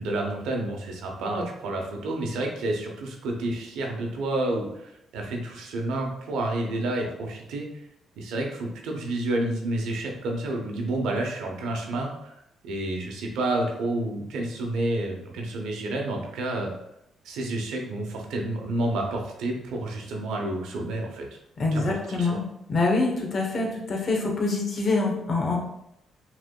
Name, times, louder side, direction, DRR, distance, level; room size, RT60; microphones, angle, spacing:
voice 1, 0.0-7.7 8.2-12.4 12.6-16.7 17.2-21.2 21.7-22.4, right 2 dB, 85° right, 1 dB, 0.8 m, -29 dB
voice 2, 21.6-22.4 22.7-25.6, left 3 dB, 50° left, 0 dB, 1.0 m, -25 dB
5.1 x 3.4 x 2.3 m, 0.83 s
cardioid pair, 90°, 0 cm